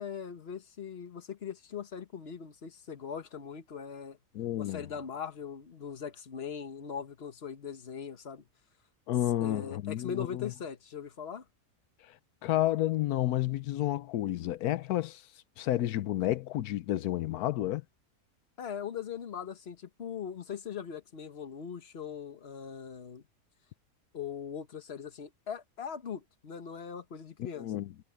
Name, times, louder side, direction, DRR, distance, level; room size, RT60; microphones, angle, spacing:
voice 1, 0.0-4.2 4.6-8.4 9.4-11.4 18.6-23.2 24.1-27.7, left 7 dB, 45° left, 1.5 m, -40 dB
voice 2, 4.3-4.9 9.1-10.5 12.0-12.2 12.4-15.2 15.6-17.8 27.4-27.9, left 14 dB, 90° left, 1.2 m, -31 dB
omnidirectional pair, 1.6 m